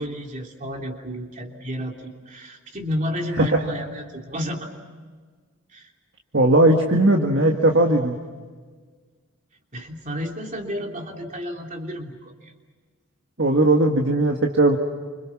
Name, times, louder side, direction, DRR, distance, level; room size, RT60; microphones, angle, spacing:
voice 1, 0.0-4.7 5.7-5.9 9.7-12.5, equal, 35° right, 2 dB, 3.1 m, -31 dB
voice 2, 6.3-8.2 13.4-14.8, right 1 dB, 55° right, 2 dB, 1.8 m, -18 dB
29.5 x 26.5 x 6.0 m, 1.5 s
head